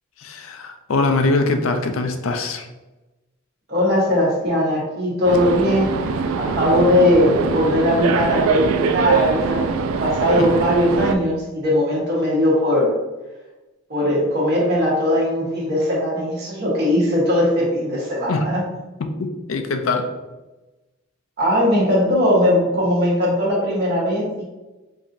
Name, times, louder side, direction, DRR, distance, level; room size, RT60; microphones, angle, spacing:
voice 1, 0.2-2.7 10.4-10.5 18.3-18.5 19.0-20.1, left 3 dB, 70° left, 6 dB, 0.4 m, -22 dB
voice 2, 3.7-5.9 6.4-13.0 13.9-18.6 21.4-24.4, left 1 dB, 50° right, -5 dB, 1.3 m, -19 dB
sound 1, 5.3-11.2, right 5 dB, 80° right, 0.3 m, -22 dB
4.6 x 2.7 x 2.6 m, 1.1 s
head